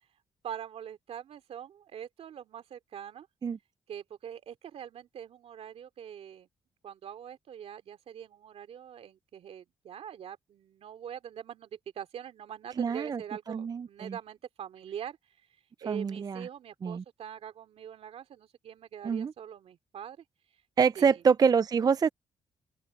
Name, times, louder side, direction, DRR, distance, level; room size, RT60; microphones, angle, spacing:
voice 1, 0.4-3.3 3.9-6.5 6.8-15.2 15.8-20.2 21.0-21.2, right 9 dB, 75° right, 2.7 m, -43 dB
voice 2, 12.8-13.2 13.5-14.2 15.9-16.5 16.8-17.0 19.0-19.3 20.8-22.1, right 6 dB, 40° right, 0.4 m, -26 dB
open air
cardioid pair, 75°, 11 cm